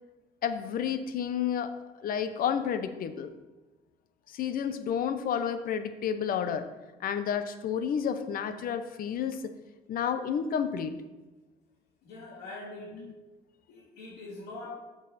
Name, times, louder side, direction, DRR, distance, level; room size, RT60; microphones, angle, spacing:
voice 1, 0.4-3.3 4.3-6.7 7.0-9.5 9.9-10.9, left 8 dB, 60° left, 10 dB, 0.8 m, -30 dB
voice 2, 12.0-13.0 13.7-14.8, left 2 dB, 80° left, -4 dB, 2.2 m, -43 dB
8.4 x 6.4 x 4.2 m, 1.1 s
cardioid pair, 110°, 17 cm